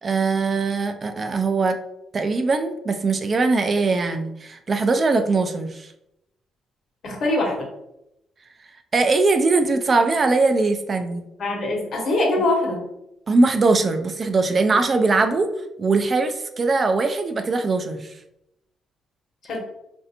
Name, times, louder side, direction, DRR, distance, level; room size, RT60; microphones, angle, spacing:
voice 1, 0.0-1.8 2.1-5.9 8.9-11.3 13.3-15.5 15.8-18.1, right 3 dB, 40° right, 7 dB, 0.3 m, -21 dB
voice 2, 7.0-7.7 11.4-12.8 19.5-19.7, left 2 dB, 60° left, -1 dB, 1.1 m, -23 dB
3.2 x 2.6 x 2.8 m, 0.85 s
cardioid pair, 90°, 0 cm